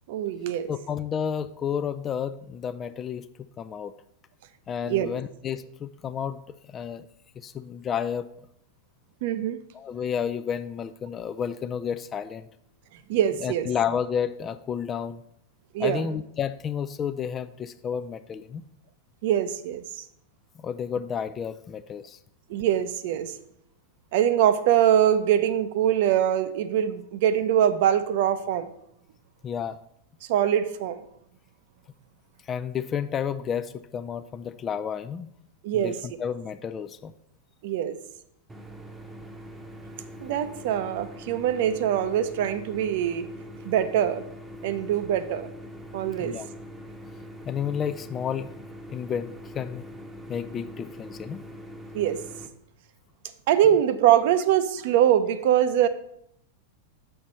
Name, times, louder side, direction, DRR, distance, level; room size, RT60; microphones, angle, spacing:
voice 1, 0.1-0.7 4.9-5.1 9.2-9.6 13.1-13.7 15.7-16.0 19.2-20.0 22.5-23.3 24.1-28.7 30.3-31.0 35.6-36.0 37.6-38.0 40.2-43.3 43.6-44.2 44.6-45.5 45.9-46.4 51.9-52.2 53.5-55.9, right 10 dB, 60° right, 12 dB, 0.6 m, -23 dB
voice 2, 0.7-3.9 4.7-7.1 7.4-8.3 9.7-12.5 13.4-15.2 15.8-18.6 20.6-22.2 29.4-29.8 32.4-35.3 35.7-37.1 46.2-46.5 47.5-48.5 48.9-49.8 50.3-51.4, left 8 dB, 25° left, 11 dB, 0.3 m, -31 dB
sound 1, 38.5-52.5, equal, 10° right, 0.9 m, -43 dB
6.3 x 4.5 x 5.4 m, 0.73 s
hypercardioid pair, 110°, 0 cm